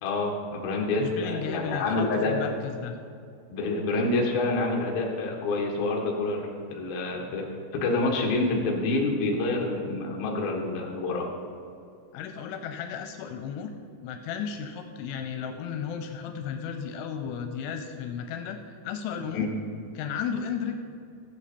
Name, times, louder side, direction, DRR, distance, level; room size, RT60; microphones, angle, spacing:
voice 1, 0.0-2.3 3.5-7.4 7.7-11.3 19.3-19.5, left 2 dB, 60° left, 0 dB, 2.9 m, -27 dB
voice 2, 1.0-3.0 12.1-13.7 14.0-18.6 18.8-19.5 19.9-20.8, left 7 dB, 85° left, 6 dB, 3.1 m, -34 dB
16.5 x 7.8 x 4.3 m, 2.4 s
omnidirectional pair, 5.3 m